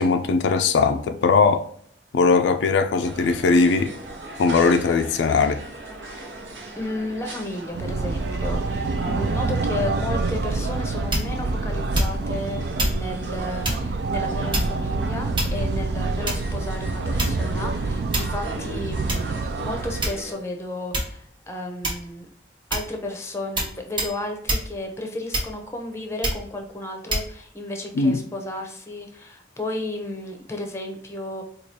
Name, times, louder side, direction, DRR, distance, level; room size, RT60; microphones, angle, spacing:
voice 1, 0.0-1.7 2.1-3.9 4.4-5.6 27.9-28.2, left 4 dB, 75° left, 0.3 m, -19 dB
sound 1, 3.0-20.3, right 1 dB, 80° right, 0.9 m, -39 dB
voice 2, 6.8-22.3 22.7-31.4, left 1 dB, 15° left, 0.6 m, -33 dB
sound 2, 7.7-20.1, right 3 dB, 60° right, 0.3 m, -27 dB
sound 3, 11.1-11.5 11.9-12.3 12.8-13.0 13.6-13.9 14.5-14.9 15.3-15.8 16.3-16.6 17.2-17.5 18.1-18.4 19.1-19.2 20.0-20.4 20.9-21.2 21.8-22.2 22.7-22.9 23.6-23.7 24.0-24.2 24.5-24.7 25.3-25.7 26.2-26.5 27.1-27.3, right 1 dB, 25° right, 1.1 m, -25 dB
4.6 x 2.4 x 2.7 m
head